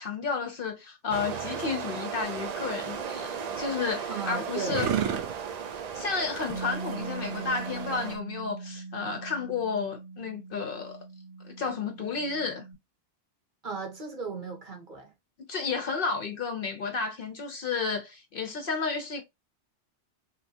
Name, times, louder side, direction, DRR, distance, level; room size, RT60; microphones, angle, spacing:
voice 1, 0.0-4.9 5.9-11.1 11.4-12.6 15.4-19.2, left 5 dB, 60° left, 0.7 m, -32 dB
sound 1, 1.1-8.2, right 7 dB, 70° right, 0.4 m, -36 dB
sound 2, 2.1-8.2, right 8 dB, 85° right, 0.9 m, -36 dB
voice 2, 4.1-4.9 13.6-15.1, right 4 dB, 45° right, 1.0 m, -36 dB
Bass guitar, 6.5-12.7, right 3 dB, 20° left, 0.8 m, -41 dB
3.1 x 2.9 x 2.7 m
omnidirectional pair, 1.2 m